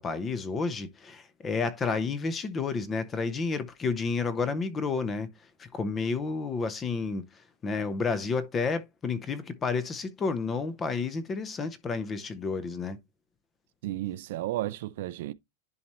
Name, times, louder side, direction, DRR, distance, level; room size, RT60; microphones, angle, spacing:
voice 1, 0.0-13.0, left 4 dB, 15° left, 0.6 m, -31 dB
voice 2, 13.8-15.3, right 15 dB, 55° right, 0.4 m, -33 dB
10.5 x 4.1 x 3.0 m
supercardioid pair, 175°, 0 cm